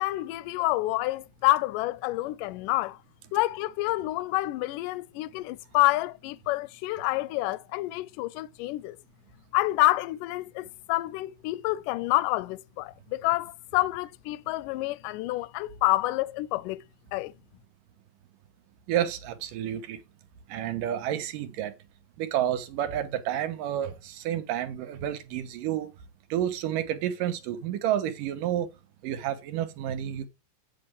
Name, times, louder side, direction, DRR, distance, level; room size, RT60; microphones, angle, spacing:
voice 1, 0.0-3.0 3.3-9.0 9.5-16.8 17.1-17.3, left 19 dB, 80° left, 2.1 m, -28 dB
voice 2, 18.9-20.0 20.5-21.7 22.2-25.9 26.3-28.7 29.0-30.3, right 11 dB, 80° right, 2.7 m, -30 dB
9.0 x 7.7 x 3.4 m
omnidirectional pair, 3.9 m